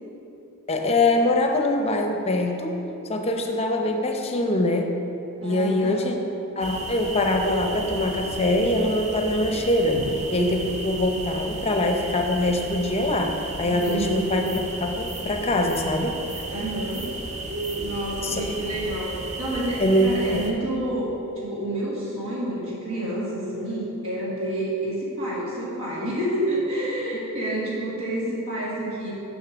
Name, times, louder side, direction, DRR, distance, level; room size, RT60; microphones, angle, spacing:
voice 1, 0.7-2.8 3.1-4.9 5.4-6.1 6.6-10.0 10.3-16.4 18.2-18.5 19.8-20.3 27.1-27.2, left 1 dB, 30° left, 3 dB, 0.6 m, -23 dB
voice 2, 5.4-6.1 9.9-10.1 13.6-14.3 16.5-17.1 17.8-29.1, right 1 dB, 70° right, -7 dB, 1.8 m, -29 dB
sound 1, 6.6-20.5, right 2 dB, 30° right, 0.6 m, -34 dB
6.9 x 6.3 x 5.0 m, 2.9 s
head